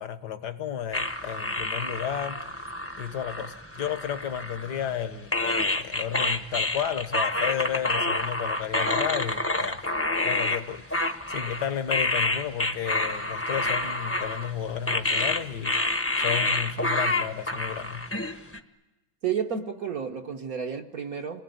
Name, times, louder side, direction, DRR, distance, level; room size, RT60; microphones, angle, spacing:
voice 1, 0.0-2.5 3.0-9.8 10.2-18.1, left 9 dB, 60° left, 11 dB, 1.7 m, -33 dB
sound 1, 0.9-5.0 5.3-18.6, left 2 dB, 10° left, 0.8 m, -28 dB
voice 2, 19.2-21.4, right 7 dB, 50° right, 4 dB, 1.3 m, -31 dB
28.5 x 20.5 x 9.3 m, 1.1 s
omnidirectional pair, 2.1 m